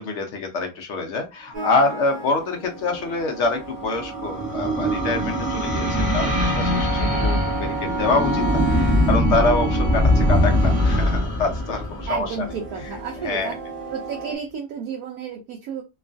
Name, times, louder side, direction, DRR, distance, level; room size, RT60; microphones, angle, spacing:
voice 1, 0.0-12.4 13.2-13.5, left 3 dB, 70° left, 0.6 m, -26 dB
sound 1, 1.5-14.3, right 3 dB, 40° right, 0.8 m, -32 dB
sound 2, 3.2-12.8, left 1 dB, 10° right, 0.5 m, -22 dB
voice 2, 12.1-13.6 13.9-15.8, right 7 dB, 70° right, 1.0 m, -31 dB
3.0 x 2.3 x 2.4 m
omnidirectional pair, 1.9 m